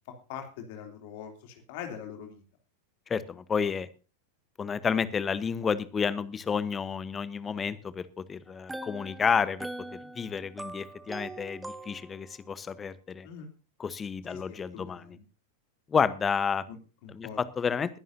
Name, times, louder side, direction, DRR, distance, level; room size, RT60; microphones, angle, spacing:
voice 1, 0.1-2.4 13.2-13.5 14.3-15.2 16.7-17.4, left 8 dB, 50° left, 4 dB, 3.1 m, -43 dB
voice 2, 3.1-3.9 4.6-13.3 13.8-15.2 15.9-16.6 17.1-18.0, left 6 dB, 20° left, 15 dB, 1.1 m, -30 dB
sound 1, 8.5-12.4, right 1 dB, 5° right, 1.1 m, -42 dB
22.0 x 11.0 x 2.7 m, 0.33 s
figure-of-eight pair, 90°, 0 cm